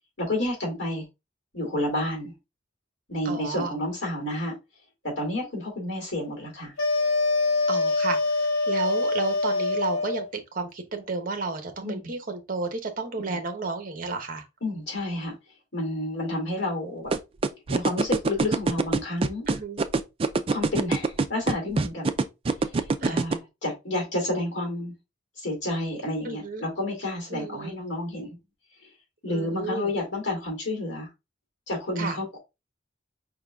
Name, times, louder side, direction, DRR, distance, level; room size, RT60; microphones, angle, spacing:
voice 1, 0.2-1.0 1.5-2.3 3.1-4.6 5.0-6.7 11.8-12.1 14.6-15.3 15.7-17.1 17.7-19.5 20.5-22.0 22.6-22.8 23.0-24.9 25.4-28.3 29.2-31.1 31.7-32.4, left 1 dB, 65° left, 2.3 m, -30 dB
voice 2, 3.2-3.7 7.7-10.3 10.5-14.4 19.5-19.8 23.0-23.2 26.2-26.6 27.3-27.7 29.3-29.9 32.0-32.2, right 3 dB, 45° right, 0.9 m, -32 dB
sound 1, 6.8-10.3, left 3 dB, 80° left, 1.8 m, -24 dB
sound 2, 17.1-23.3, right 3 dB, 30° right, 0.3 m, -23 dB
5.1 x 3.7 x 2.3 m
head